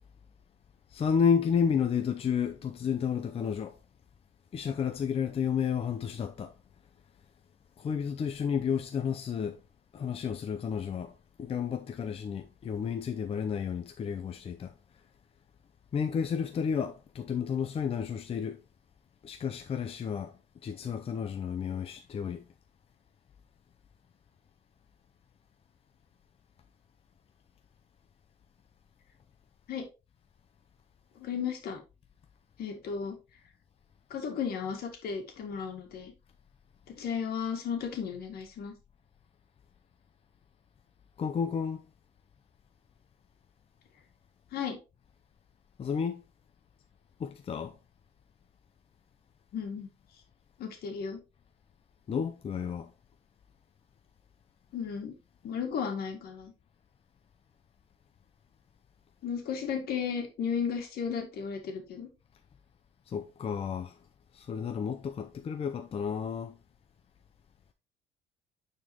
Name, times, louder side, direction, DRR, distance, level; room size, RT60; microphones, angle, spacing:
voice 1, 0.9-3.7 4.5-6.5 7.8-9.6 9.9-11.1 11.4-14.7 15.9-18.6 19.2-20.3 20.6-22.4 41.2-41.8 45.8-46.2 47.2-47.7 52.1-52.9 63.1-63.9 64.3-66.5, left 7 dB, 35° left, 0.6 m, -31 dB
voice 2, 31.2-31.8 32.6-33.2 34.1-36.1 37.0-38.7 44.5-44.8 49.5-49.9 50.6-51.2 54.7-55.1 55.4-56.5 59.2-62.1, left 7 dB, 65° left, 2.1 m, -34 dB
9.3 x 4.4 x 2.9 m
cardioid pair, 110°, 17 cm